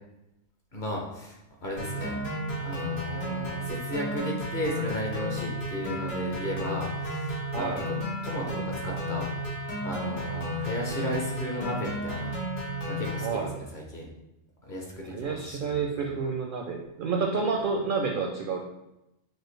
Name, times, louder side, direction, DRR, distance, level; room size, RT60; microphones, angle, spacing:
voice 1, 0.7-2.2 2.6-8.0 8.2-9.3 9.8-12.3 12.9-14.1 14.6-16.1, equal, 45° left, -1 dB, 0.9 m, -35 dB
sound 1, 1.8-13.3, equal, 70° left, 1.8 m, -33 dB
voice 2, 7.5-7.8 13.2-13.5 15.1-18.6, right 4 dB, 60° right, 2 dB, 0.6 m, -29 dB
6.2 x 2.4 x 3.2 m, 0.91 s
omnidirectional pair, 1.3 m